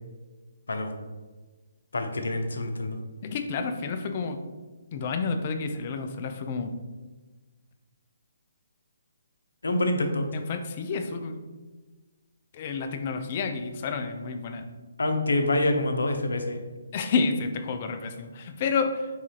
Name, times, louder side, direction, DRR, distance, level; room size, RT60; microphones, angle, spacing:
voice 1, 1.9-3.0 9.6-10.3 15.0-16.6, left 2 dB, 85° left, 5 dB, 0.7 m, -26 dB
voice 2, 3.2-4.4 4.9-6.7 10.3-11.4 12.5-14.6 16.9-19.1, left 4 dB, 40° left, 6 dB, 0.5 m, -30 dB
4.8 x 3.6 x 2.9 m, 1.3 s
hypercardioid pair, 155°, 0 cm